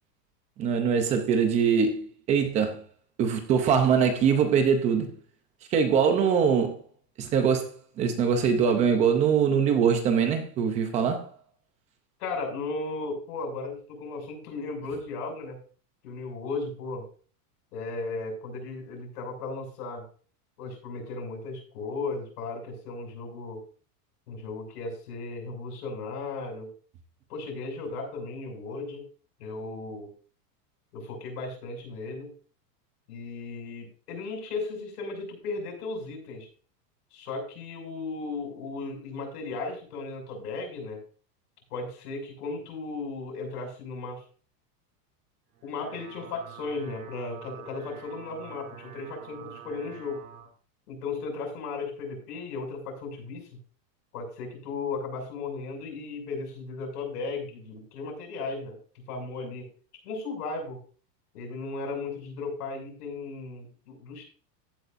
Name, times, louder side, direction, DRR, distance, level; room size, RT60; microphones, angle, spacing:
voice 1, 0.6-2.8 3.2-5.1 5.7-6.8 7.2-7.7 8.0-11.3, right 6 dB, 15° right, 0.6 m, -23 dB
voice 2, 12.2-15.6 16.0-17.0 17.7-20.0 20.6-23.6 24.3-26.7 27.3-29.1 29.4-30.1 30.9-32.3 33.1-36.5 37.1-41.0 41.7-44.2 45.6-50.2 50.9-53.5 54.1-58.8 59.1-59.7 60.0-60.8 61.3-64.2, left 3 dB, 70° left, 6.3 m, -36 dB
sound 1, 45.5-50.5, right 8 dB, 65° right, 3.4 m, -47 dB
15.0 x 8.5 x 2.6 m
supercardioid pair, 175°, 48 cm